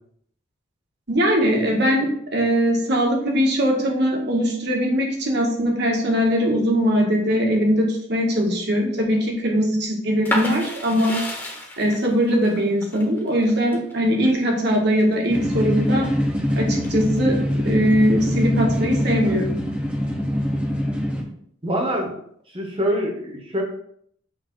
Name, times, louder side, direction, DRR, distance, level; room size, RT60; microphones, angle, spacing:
voice 1, 1.1-11.2 11.8-16.1 16.5-19.6, equal, 55° right, 0 dB, 1.7 m, -21 dB
sound 1, 10.2-15.9 16.3-17.2, left 1 dB, 10° left, 1.2 m, -31 dB
sound 2, 15.3-21.2, equal, 5° right, 0.9 m, -24 dB
voice 2, 21.6-22.2 22.5-23.6, equal, 25° right, 2 dB, 1.3 m, -24 dB
6.5 x 3.4 x 6.1 m, 0.67 s
head